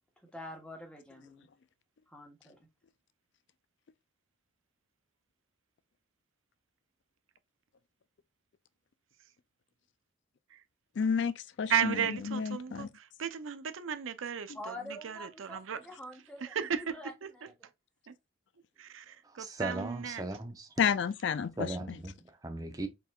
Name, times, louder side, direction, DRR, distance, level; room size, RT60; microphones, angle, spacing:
voice 1, 0.2-1.5 2.1-2.6 14.5-17.7 19.0-19.2, left 1 dB, 5° left, 1.1 m, -46 dB
voice 2, 11.0-12.9 20.8-22.0, left 6 dB, 60° left, 0.4 m, -31 dB
voice 3, 11.7-14.5 15.0-15.8 16.5-16.9 18.1-18.2 18.8-20.2, right 7 dB, 80° right, 0.5 m, -34 dB
voice 4, 19.2-20.7 21.6-22.9, right 2 dB, 20° right, 0.7 m, -38 dB
4.5 x 3.6 x 2.3 m
head